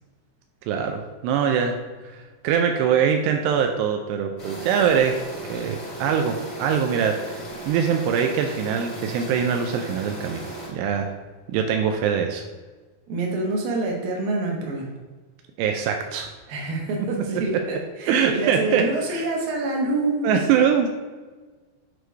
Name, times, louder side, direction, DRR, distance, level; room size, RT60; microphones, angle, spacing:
voice 1, 0.7-1.8 2.1-5.2 5.5-7.4 7.7-10.4 10.7-11.1 11.5-12.4 15.6-16.3 17.5-17.6 18.1-19.3 20.2-20.9, right 7 dB, 90° right, 4 dB, 2.4 m, -23 dB
sound 1, 4.4-10.7, right 1 dB, 80° left, 0.7 m, -36 dB
voice 2, 13.1-15.0 16.5-20.4, right 2 dB, 65° right, -1 dB, 2.4 m, -26 dB
8.2 x 3.2 x 4.5 m, 1.3 s
omnidirectional pair, 5.4 m